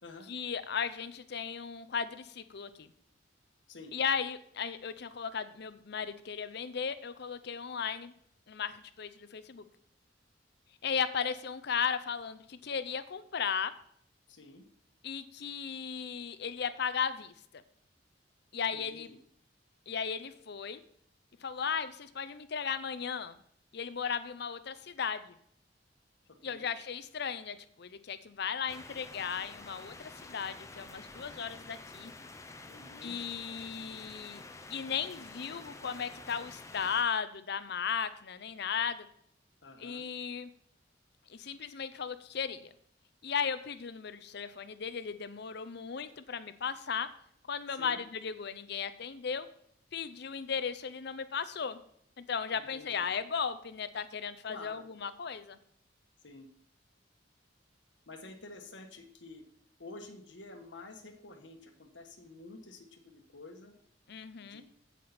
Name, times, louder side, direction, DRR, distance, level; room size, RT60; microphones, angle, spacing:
voice 1, 0.3-2.9 3.9-8.1 8.5-9.6 10.8-13.7 15.0-17.3 18.5-19.1 19.9-20.8 21.4-23.3 23.7-25.3 26.4-32.1 33.0-34.4 34.7-39.1 39.8-40.5 41.3-42.7 43.2-47.1 47.5-49.5 49.9-51.8 52.2-55.6 64.1-64.6, left 6 dB, 65° left, 13 dB, 0.6 m, -36 dB
voice 2, 14.3-14.6 18.7-19.2 26.4-26.6 32.7-33.2 39.6-40.0 47.8-48.0 52.5-53.1 54.5-54.8 56.2-56.5 58.1-59.4 59.8-63.7 64.4-64.6, left 3 dB, 80° left, 5 dB, 1.4 m, -49 dB
sound 1, 28.7-37.0, left 2 dB, 15° left, 0.7 m, -49 dB
8.5 x 8.3 x 4.2 m, 0.67 s
head